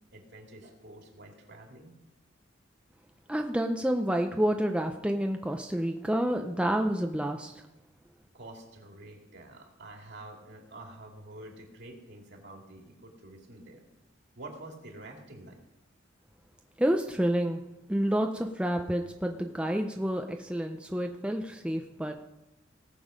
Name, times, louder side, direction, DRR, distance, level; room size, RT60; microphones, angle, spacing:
voice 1, 0.1-1.9 8.3-13.8 14.3-15.6, right 1 dB, 60° right, 1 dB, 2.7 m, -48 dB
voice 2, 3.3-7.6 16.8-17.6 17.9-22.2, right 1 dB, 5° right, 4 dB, 0.6 m, -29 dB
18.0 x 7.0 x 5.1 m, 0.96 s
head